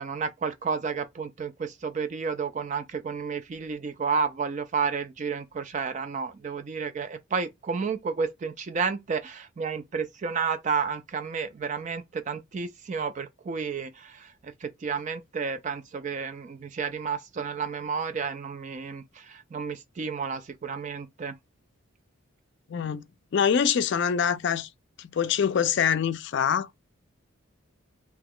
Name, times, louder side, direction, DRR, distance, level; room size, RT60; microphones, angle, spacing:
voice 1, 0.0-21.3, right 5 dB, 35° right, 0.3 m, -31 dB
voice 2, 22.7-23.0 23.3-24.7 25.0-26.9, left 7 dB, 55° left, 0.3 m, -25 dB
2.8 x 2.3 x 3.5 m
head